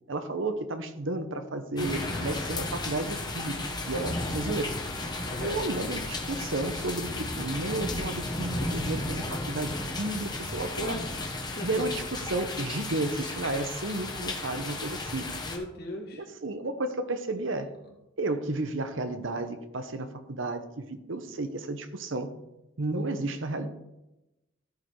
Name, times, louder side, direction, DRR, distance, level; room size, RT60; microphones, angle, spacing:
voice 1, 0.1-3.6 3.9-4.8 5.4-11.0 11.6-15.3 16.1-17.7 18.2-22.3 22.8-23.7, right 2 dB, 70° right, 9 dB, 0.9 m, -32 dB
sound 1, 1.8-15.6, left 2 dB, 20° left, 1.2 m, -34 dB
voice 2, 11.4-11.9 15.4-16.2 17.8-17.9, left 1 dB, 50° left, 1 dB, 2.2 m, -38 dB
14.0 x 5.2 x 4.7 m, 0.95 s
head